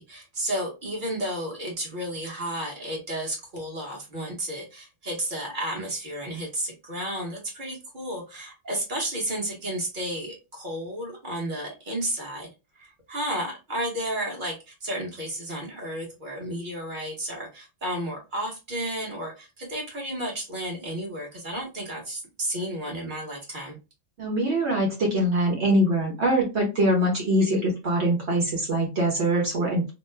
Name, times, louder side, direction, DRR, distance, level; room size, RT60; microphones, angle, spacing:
voice 1, 0.0-12.5 12.7-23.8 27.4-27.7, right 1 dB, 40° right, -1 dB, 1.3 m, -32 dB
voice 2, 24.2-29.9, right 1 dB, 60° right, -2 dB, 1.2 m, -23 dB
2.9 x 2.1 x 3.2 m, 0.27 s
omnidirectional pair, 1.3 m